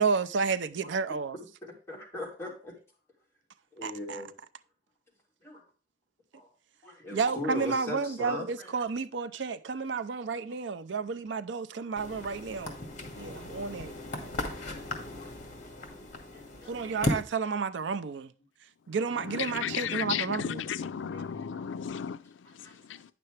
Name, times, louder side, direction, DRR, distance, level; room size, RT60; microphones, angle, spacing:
voice 1, 0.0-1.4 3.8-4.2 7.1-12.8 13.2-13.9 16.7-18.3 18.9-20.6, right 5 dB, 70° right, 0.5 m, -31 dB
voice 2, 1.6-2.8 3.7-4.3 5.4-5.6 6.3-6.5 6.8-8.7 14.6-14.9 15.2-15.3 15.6-16.0 16.3-16.9 21.1-21.3 21.5-21.7 22.6-23.1, left 1 dB, 15° left, 2.9 m, -40 dB
sound 1, 11.9-17.2, left 2 dB, 40° left, 2.1 m, -36 dB
voice 3, 19.1-23.1, left 8 dB, 80° left, 0.4 m, -35 dB
9.7 x 6.7 x 3.3 m
head